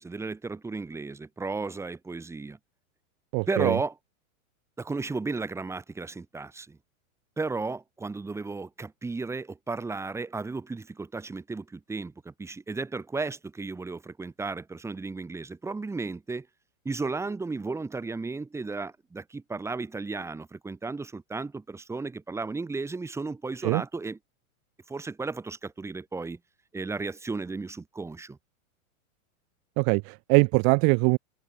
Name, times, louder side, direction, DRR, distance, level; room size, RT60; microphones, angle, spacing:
voice 1, 0.0-2.6 3.5-4.0 4.8-6.8 7.4-16.5 16.8-24.2 24.9-26.4 26.7-28.4, right 3 dB, 5° right, 2.5 m, -34 dB
voice 2, 3.3-3.8 23.6-23.8 29.8-31.2, right 39 dB, 30° right, 1.2 m, -22 dB
supercardioid pair, 155°, 42 cm